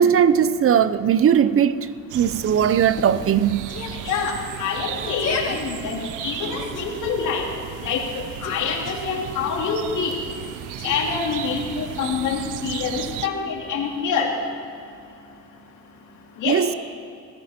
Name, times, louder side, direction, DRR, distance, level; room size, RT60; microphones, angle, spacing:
voice 1, 0.0-1.8 2.1-3.7 16.4-16.7, right 8 dB, 50° right, 0.6 m, -18 dB
Outside Ambience Night, 2.1-13.3, right 11 dB, 85° right, 0.7 m, -35 dB
Yell, 3.7-4.1 5.0-5.6 6.3-6.8 8.0-9.0 10.8-11.4, left 5 dB, 55° left, 1.9 m, -32 dB
voice 2, 4.0-7.4 7.8-10.2 10.8-14.3 16.4-16.6, left 5 dB, 80° left, 2.6 m, -26 dB
22.0 x 14.5 x 4.3 m
cardioid pair, 90°, 30 cm